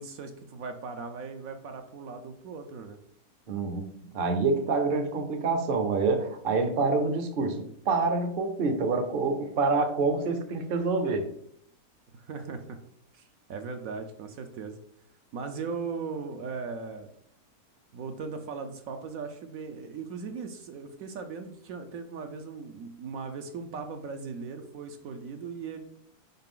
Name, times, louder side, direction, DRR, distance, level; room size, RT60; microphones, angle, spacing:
voice 1, 0.0-3.0 12.1-12.8 13.1-14.8 15.3-17.1 17.9-25.8, right 5 dB, 70° right, 6 dB, 1.0 m, -38 dB
voice 2, 3.5-3.9 4.1-11.3, right 3 dB, 45° right, 7 dB, 0.8 m, -27 dB
5.7 x 4.8 x 3.7 m, 0.65 s
omnidirectional pair, 1.6 m